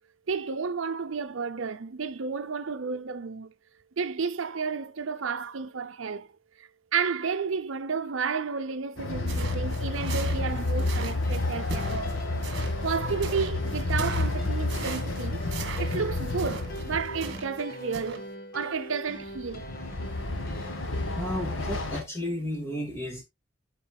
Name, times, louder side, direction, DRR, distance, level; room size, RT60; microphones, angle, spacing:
voice 1, 0.3-3.5 4.0-6.3 6.6-12.1 12.8-15.4 15.8-18.3 18.5-19.7, right 5 dB, 70° right, 0.6 m, -32 dB
Train, 9.0-17.4 19.3-22.0, left 2 dB, 70° left, 1.5 m, -30 dB
sound 1, 9.3-17.6 17.9-18.2, right 4 dB, 55° right, 1.6 m, -40 dB
sound 2, 10.4-21.3, equal, 45° left, 1.3 m, -43 dB
voice 2, 21.2-23.2, left 1 dB, 15° left, 2.0 m, -33 dB
12.0 x 4.5 x 2.3 m
head